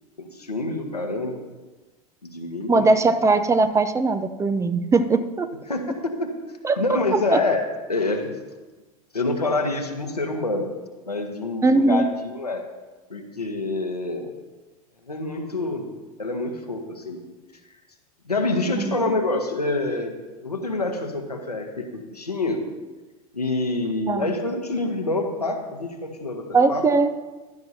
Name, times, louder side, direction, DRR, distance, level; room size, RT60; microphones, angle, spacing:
voice 1, 0.2-1.4 2.2-2.9 5.7-6.3 6.8-8.3 9.1-10.7 11.1-12.6 13.1-14.3 15.1-15.9 16.2-17.2 18.3-20.1 20.4-22.6 23.3-26.9, left 2 dB, 90° left, 3 dB, 1.4 m, -26 dB
voice 2, 2.7-5.5 6.6-6.8 7.3-7.4 11.6-12.1 18.7-19.0 24.1-24.3 26.5-27.1, right 3 dB, 15° right, 10 dB, 0.7 m, -20 dB
16.0 x 12.0 x 2.8 m, 1.2 s
figure-of-eight pair, 85°, 19 cm